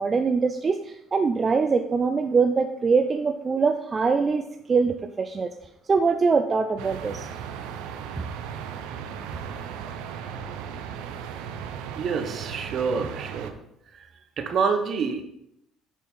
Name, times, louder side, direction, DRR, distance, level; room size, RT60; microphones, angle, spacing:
voice 1, 0.0-5.5 5.9-7.3, right 4 dB, 30° right, 6 dB, 0.5 m, -23 dB
sound 1, 6.8-13.5, right 7 dB, 85° right, 0.7 m, -36 dB
voice 2, 11.9-13.6 13.9-14.1 14.4-15.2, right 5 dB, 45° right, 7 dB, 1.0 m, -27 dB
7.2 x 4.4 x 5.5 m, 0.78 s
cardioid pair, 105°, 0 cm